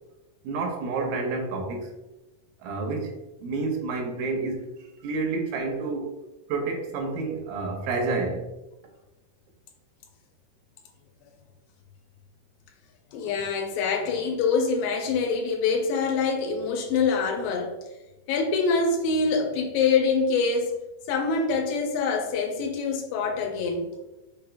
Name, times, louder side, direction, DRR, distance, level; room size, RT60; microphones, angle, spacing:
voice 1, 0.4-1.9 2.6-4.7 5.0-6.1 6.5-8.5, right 3 dB, 85° right, 3 dB, 2.4 m, -29 dB
voice 2, 13.1-17.8 18.3-20.8 21.1-23.9, left 4 dB, 85° left, 3 dB, 2.3 m, -25 dB
5.9 x 3.3 x 2.3 m, 1.0 s
omnidirectional pair, 4.1 m